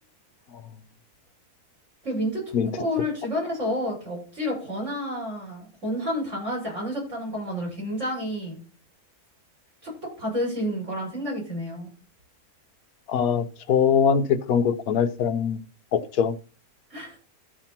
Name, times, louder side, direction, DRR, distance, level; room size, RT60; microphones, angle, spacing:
voice 1, 2.0-2.4 2.7-8.6 9.8-11.9 16.9-17.2, equal, 50° right, 7.4 m, -30 dB
voice 2, 13.1-15.6 15.9-16.3, left 7 dB, 70° left, 1.4 m, -22 dB
13.0 x 5.0 x 5.9 m
omnidirectional pair, 1.6 m